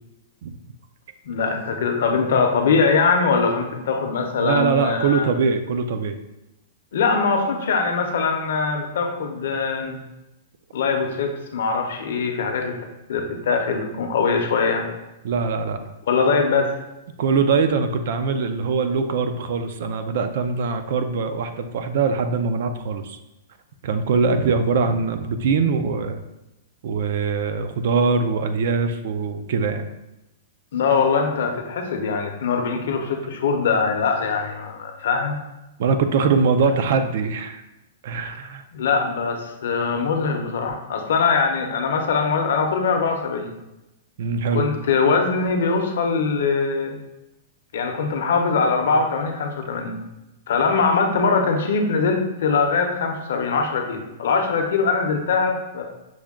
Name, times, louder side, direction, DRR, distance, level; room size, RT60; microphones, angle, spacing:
voice 1, 1.2-5.3 6.9-10.0 10.7-12.8 13.1-14.9 16.1-16.8 30.7-35.4 38.7-43.5 44.5-47.0 47.7-50.0 50.5-55.8, left 5 dB, 60° left, 4 dB, 0.6 m, -22 dB
voice 2, 4.4-6.2 15.2-15.8 17.2-23.2 23.8-26.2 26.8-29.9 35.8-37.6 38.0-38.6 44.2-44.7, right 5 dB, 50° right, 9 dB, 0.3 m, -22 dB
6.2 x 2.2 x 3.5 m, 0.95 s
supercardioid pair, 175°, 0 cm